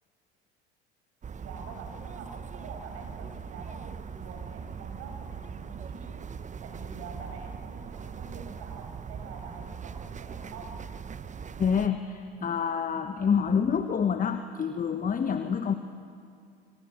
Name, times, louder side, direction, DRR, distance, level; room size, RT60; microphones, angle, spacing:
sound 1, 1.2-11.9, right 6 dB, 25° right, 1.1 m, -41 dB
voice 1, 1.4-6.1 6.6-10.8, right 4 dB, 55° right, 3 dB, 7.2 m, -45 dB
voice 2, 11.6-15.7, left 7 dB, 25° left, 8 dB, 1.5 m, -27 dB
28.0 x 28.0 x 7.1 m, 2.4 s
figure-of-eight pair, 70°, 30 cm